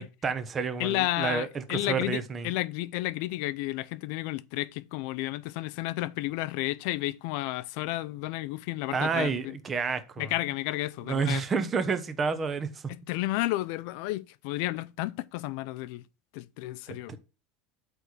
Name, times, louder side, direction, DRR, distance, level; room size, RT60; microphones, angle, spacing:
voice 1, 0.0-2.5 8.9-10.3 11.1-12.8 16.9-17.2, right 5 dB, 25° right, 1.0 m, -30 dB
voice 2, 0.8-9.6 10.2-11.4 12.9-16.0 16.3-17.2, left 17 dB, 65° left, 0.5 m, -32 dB
8.3 x 3.4 x 6.4 m
supercardioid pair, 145°, 0 cm